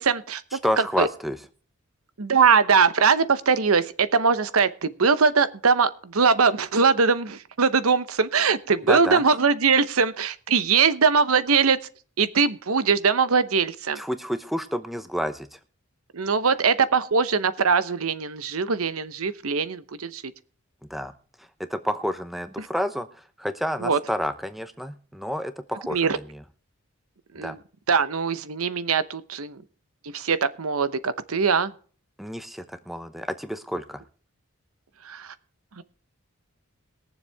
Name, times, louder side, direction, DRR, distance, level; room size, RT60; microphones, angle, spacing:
voice 1, 0.0-0.6 1.0-1.1 2.2-11.8 12.2-14.0 16.1-20.2 22.6-22.7 23.8-24.0 25.9-26.2 27.3-27.6 27.9-29.6 30.1-31.7 35.0-35.3 35.8-35.9, right 5 dB, 80° right, 14 dB, 0.9 m, -21 dB
voice 2, 0.6-1.4 8.9-9.2 14.0-15.6 20.9-21.1 21.7-23.1 23.4-26.2 27.4-27.6 32.2-34.0, equal, ahead, 10 dB, 0.8 m, -29 dB
22.0 x 7.3 x 3.4 m, 0.42 s
head